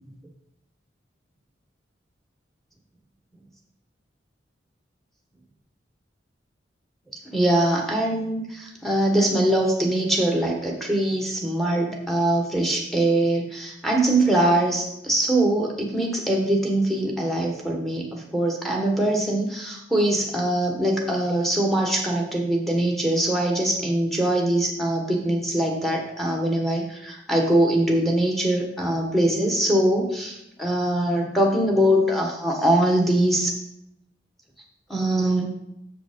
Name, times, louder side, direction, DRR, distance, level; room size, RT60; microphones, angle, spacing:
voice 1, 7.3-33.5 34.9-35.5, right 1 dB, ahead, 0 dB, 1.3 m, -22 dB
7.3 x 5.1 x 5.1 m, 0.83 s
head